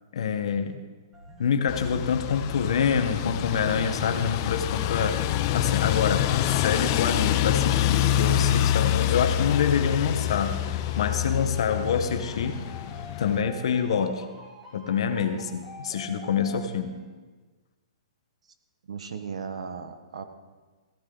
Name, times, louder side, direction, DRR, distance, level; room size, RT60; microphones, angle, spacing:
voice 1, 0.1-0.8 1.4-5.2 5.5-12.6 13.2-14.2 14.7-17.0, left 6 dB, 65° left, 7 dB, 1.0 m, -26 dB
sound 1, 1.1-17.1, left 1 dB, 10° right, 2.4 m, -48 dB
sound 2, 1.7-13.4, left 12 dB, 30° left, 0.4 m, -26 dB
voice 2, 18.9-20.2, right 6 dB, 85° right, 9 dB, 1.3 m, -37 dB
15.5 x 12.0 x 3.8 m, 1.3 s
hypercardioid pair, 170°, 3 cm